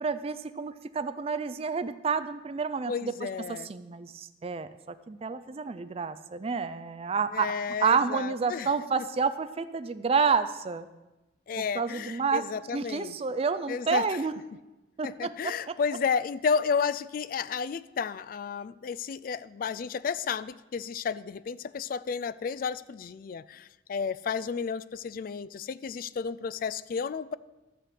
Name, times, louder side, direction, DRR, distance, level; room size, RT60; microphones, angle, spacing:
voice 1, 0.0-3.1 3.5-4.7 5.1-7.5 7.8-10.9 11.6-12.4 12.7-14.3 15.0-15.7, right 5 dB, 30° right, 11 dB, 0.4 m, -29 dB
voice 2, 2.9-3.7 7.3-8.7 11.5-13.2 13.7-14.2 15.0-27.4, left 6 dB, 50° left, 17 dB, 0.3 m, -32 dB
12.5 x 4.9 x 7.6 m, 1.1 s
head